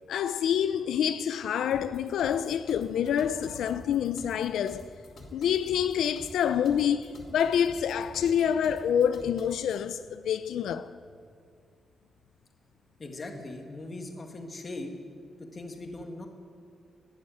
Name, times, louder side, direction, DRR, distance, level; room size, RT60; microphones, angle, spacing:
voice 1, 0.1-4.9 5.3-10.9, left 8 dB, 90° left, 0.4 m, -27 dB
sound 1, 1.7-9.6, left 1 dB, 45° left, 3.0 m, -49 dB
voice 2, 13.0-14.9 15.5-16.3, left 2 dB, 25° left, 1.8 m, -39 dB
13.0 x 11.0 x 9.2 m
wide cardioid pair, 165°, 0 cm